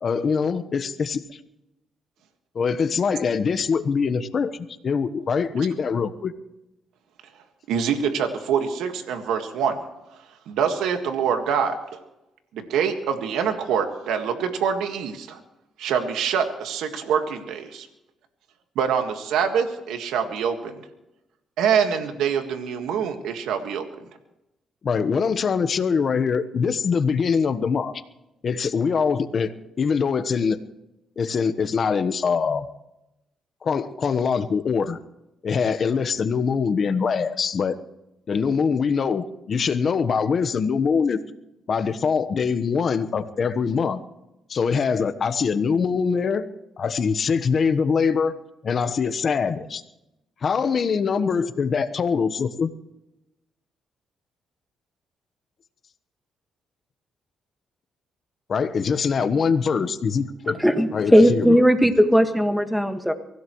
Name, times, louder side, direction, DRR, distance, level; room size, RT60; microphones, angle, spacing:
voice 1, 0.0-1.4 2.5-6.3 24.8-27.9 28.4-30.6 31.2-32.7 33.6-35.0 35.4-37.7 38.3-41.2 41.7-44.0 44.5-46.4 46.8-48.3 48.6-49.8 50.4-52.7 58.5-60.6 60.9-61.6, left 5 dB, 50° left, 11 dB, 1.2 m, -23 dB
voice 2, 7.7-9.8 10.5-11.8 12.5-15.4 15.8-17.9 18.7-20.8 21.6-23.8, right 7 dB, 85° right, 6 dB, 1.7 m, -25 dB
voice 3, 60.6-63.1, equal, ahead, 7 dB, 1.7 m, -17 dB
24.0 x 16.0 x 3.2 m, 0.91 s
cardioid pair, 90°, 0 cm